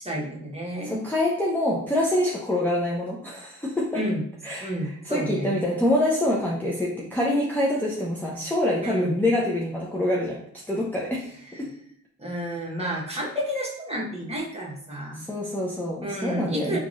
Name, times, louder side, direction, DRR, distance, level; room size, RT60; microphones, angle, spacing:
voice 1, 0.0-1.0 3.9-4.2 4.6-5.6 8.8-9.1 11.5-11.6 12.2-15.2 16.0-16.8, equal, 15° right, -3 dB, 1.3 m, -30 dB
voice 2, 0.8-4.0 4.4-10.4 10.7-11.3 11.6-11.7 15.1-16.8, left 1 dB, 5° left, -5 dB, 0.7 m, -25 dB
3.6 x 3.1 x 2.5 m, 0.65 s
hypercardioid pair, 45°, 37 cm